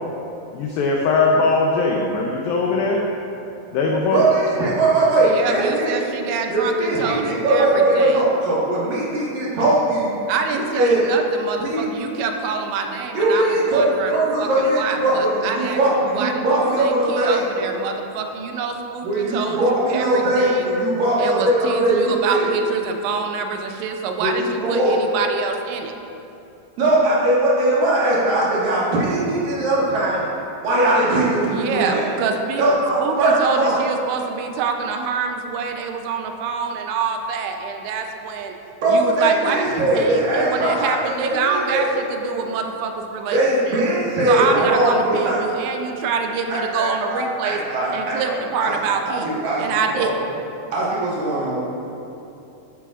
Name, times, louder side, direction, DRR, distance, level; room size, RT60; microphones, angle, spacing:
voice 1, 0.5-3.0 3.7-4.3, left 3 dB, 85° left, -1 dB, 2.1 m, -20 dB
voice 2, 4.1-6.0 6.5-10.1 10.5-11.0 11.6-11.8 13.1-17.4 19.0-22.5 24.2-24.9 26.8-30.2 30.6-32.1 32.6-33.8 38.8-40.9 41.5-42.0 43.3-45.4 46.5-48.3 48.6-48.7 49.1-49.6 49.9-50.1 50.7-51.6, right 1 dB, 60° right, -7 dB, 2.9 m, -20 dB
voice 3, 5.2-7.7 8.0-8.2 10.3-15.8 16.1-20.6 21.2-25.9 31.5-32.6 33.0-38.6 38.9-43.4 43.6-43.8 44.3-47.6 47.9-49.3 49.6-50.1, right 5 dB, 85° right, 4 dB, 2.9 m, -26 dB
12.5 x 9.5 x 2.5 m, 2.8 s
omnidirectional pair, 5.1 m